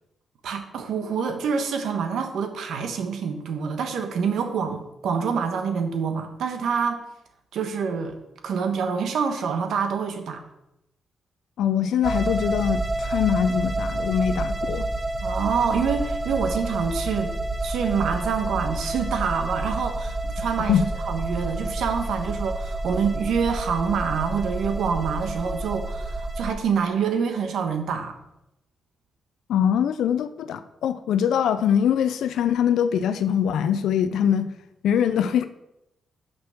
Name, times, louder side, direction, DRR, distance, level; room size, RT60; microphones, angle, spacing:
voice 1, 0.4-7.0 7.5-8.2 8.4-10.4 15.2-17.3 17.6-28.2, right 6 dB, 80° right, 6 dB, 1.2 m, -26 dB
voice 2, 11.6-14.9 20.7-20.9 29.5-34.5 34.8-35.5, left 8 dB, 85° left, 11 dB, 0.4 m, -23 dB
sound 1, 12.0-26.5, right 2 dB, 30° right, 0.9 m, -29 dB
6.2 x 6.0 x 5.8 m, 0.86 s
cardioid pair, 85°, 0 cm